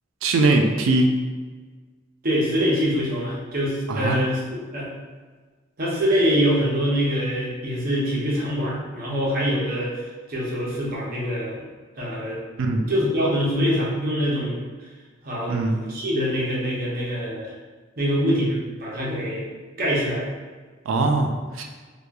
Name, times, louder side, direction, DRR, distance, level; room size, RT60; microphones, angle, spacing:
voice 1, 0.2-1.2 3.9-4.2 12.6-12.9 15.5-15.8 20.9-21.7, right 2 dB, 75° right, 4 dB, 0.3 m, -21 dB
voice 2, 2.2-4.9 5.8-9.9 10.3-11.6 12.0-12.4 12.9-14.6 15.2-17.5 18.0-19.5 19.8-20.3, equal, 45° right, -5 dB, 0.7 m, -24 dB
2.9 x 2.2 x 2.3 m, 1.4 s
head